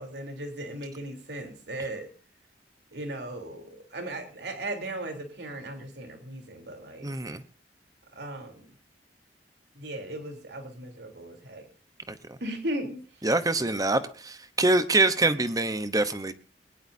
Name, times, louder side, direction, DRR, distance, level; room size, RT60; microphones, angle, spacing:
voice 1, 0.0-2.1 2.9-7.1 8.1-8.7 9.8-11.7 12.4-13.2, right 1 dB, 70° right, 4 dB, 3.6 m, -37 dB
voice 2, 7.0-7.4 12.1-12.4 13.2-16.3, right 2 dB, 20° right, 11 dB, 1.0 m, -25 dB
21.5 x 19.0 x 2.7 m, 0.34 s
head